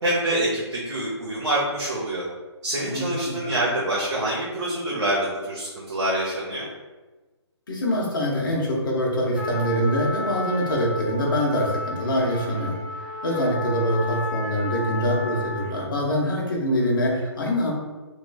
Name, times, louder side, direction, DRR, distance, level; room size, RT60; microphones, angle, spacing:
voice 1, 0.0-2.2 2.6-6.7, right 1 dB, 75° right, -6 dB, 0.9 m, -26 dB
voice 2, 2.8-3.4 7.7-12.8 13.2-17.7, equal, 45° left, -2 dB, 0.8 m, -24 dB
Trumpet, 9.3-15.9, left 2 dB, 20° left, 0.4 m, -33 dB
3.1 x 3.0 x 2.2 m, 1.2 s
hypercardioid pair, 175°, 15 cm